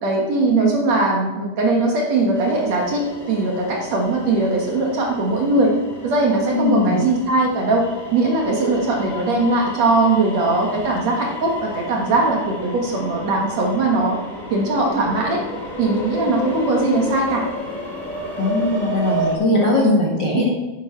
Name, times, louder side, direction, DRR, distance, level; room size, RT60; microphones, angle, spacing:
voice 1, 0.0-5.7 6.0-7.8 8.1-14.2 14.5-15.4 15.8-17.4, right 2 dB, 60° right, -1 dB, 2.0 m, -20 dB
sound 1, 2.3-19.4, equal, 15° left, 2.0 m, -32 dB
voice 2, 6.5-7.0 18.4-20.5, left 2 dB, 55° left, -3 dB, 1.2 m, -19 dB
10.5 x 10.0 x 4.5 m, 1.2 s
omnidirectional pair, 4.6 m